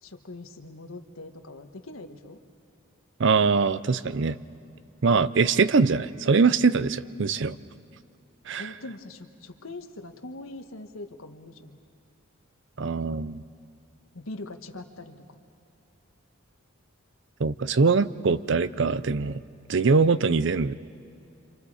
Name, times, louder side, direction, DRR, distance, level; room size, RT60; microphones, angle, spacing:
voice 1, 0.0-2.4 5.1-5.4 8.6-11.8 14.1-15.4, left 2 dB, 80° left, 6 dB, 1.4 m, -42 dB
voice 2, 3.2-4.4 5.0-7.6 8.5-8.7 12.8-13.4 17.4-19.4 19.7-20.7, right 4 dB, 60° right, 16 dB, 0.5 m, -22 dB
28.0 x 26.5 x 4.9 m, 2.6 s
head